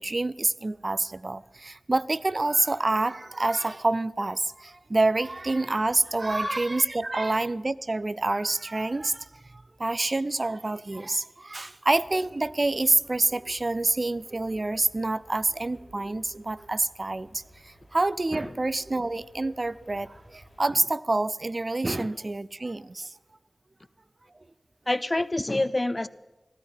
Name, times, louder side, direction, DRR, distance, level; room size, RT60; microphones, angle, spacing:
voice 1, 0.0-23.1, right 2 dB, 40° right, 0.4 m, -27 dB
sound 1, 11.9-20.6, equal, 10° right, 3.5 m, -56 dB
voice 2, 24.9-26.1, left 2 dB, 30° left, 0.5 m, -27 dB
15.5 x 13.0 x 5.5 m
wide cardioid pair, 75°, 0 cm